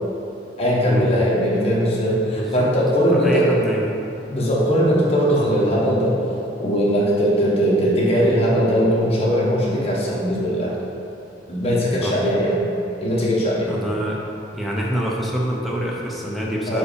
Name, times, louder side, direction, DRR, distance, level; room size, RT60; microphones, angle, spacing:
voice 1, 0.6-3.5 4.3-6.2 6.6-10.7 11.5-12.7 13.0-13.7 16.7-16.8, equal, 35° left, -5 dB, 1.2 m, -19 dB
voice 2, 2.3-2.7 3.0-3.9 12.0-12.2 13.7-14.2 14.5-16.8, equal, ahead, -4 dB, 0.7 m, -26 dB
4.8 x 4.7 x 5.1 m, 2.7 s
head